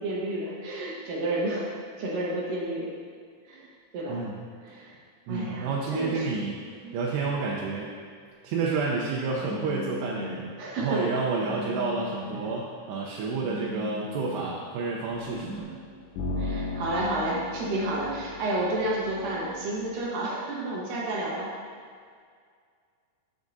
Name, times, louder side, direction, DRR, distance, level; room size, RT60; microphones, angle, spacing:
voice 1, 0.0-2.9 3.5-3.7 3.9-4.2 4.6-4.9 5.3-6.3 6.8-6.9 10.6-11.0 16.4-21.5, right 1 dB, 70° right, -4 dB, 2.4 m, -30 dB
voice 2, 4.1-4.4 5.3-6.6 6.9-7.9 8.4-10.5 10.8-15.8, right 4 dB, 85° right, -4 dB, 2.9 m, -30 dB
Telephone, 9.4-10.4 11.4-12.4 13.4-14.4 15.4-15.6, left 2 dB, 50° left, 3.2 m, -38 dB
sound 1, 15.1-20.1, left 2 dB, 85° left, 3.2 m, -37 dB
12.5 x 6.2 x 2.6 m, 2.1 s
omnidirectional pair, 4.8 m